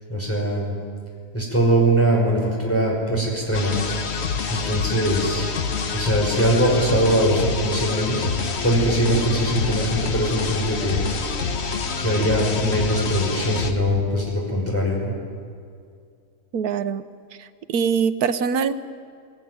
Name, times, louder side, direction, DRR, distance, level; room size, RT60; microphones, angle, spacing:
voice 1, 0.1-0.7 1.3-3.8 4.5-5.5 5.9-11.0 12.0-15.1, right 1 dB, 10° left, -3 dB, 6.0 m, -21 dB
sound 1, 3.5-13.7, left 5 dB, 50° left, 1.3 m, -27 dB
voice 2, 16.5-17.0 17.4-18.7, right 6 dB, 80° right, 12 dB, 1.4 m, -23 dB
20.0 x 19.5 x 9.6 m, 2.3 s
omnidirectional pair, 1.6 m